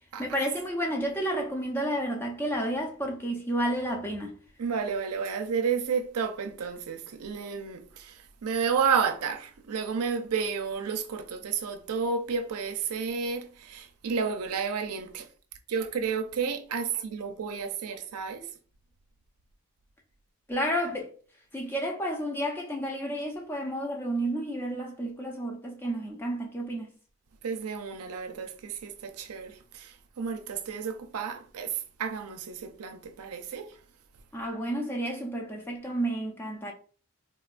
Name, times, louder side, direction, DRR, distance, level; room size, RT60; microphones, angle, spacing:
voice 1, 0.2-4.3 20.5-21.1 21.5-26.9 34.3-36.7, right 1 dB, 10° left, 0.4 m, -31 dB
voice 2, 4.6-15.3 15.7-18.5 27.4-33.8, right 6 dB, 90° right, 0.5 m, -31 dB
3.7 x 2.2 x 2.4 m
head